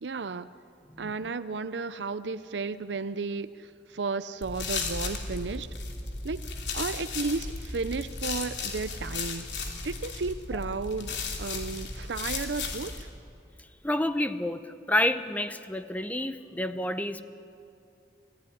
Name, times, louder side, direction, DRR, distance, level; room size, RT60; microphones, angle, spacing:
voice 1, 0.0-0.5 1.0-5.7 6.2-6.4 6.7-9.5 9.8-13.1, right 4 dB, 85° right, 13 dB, 0.6 m, -33 dB
sound 1, 4.4-13.0, left 4 dB, 85° left, 3.1 m, -35 dB
voice 2, 13.8-17.2, left 1 dB, 10° left, 10 dB, 0.8 m, -29 dB
27.0 x 17.0 x 10.0 m, 2.5 s
head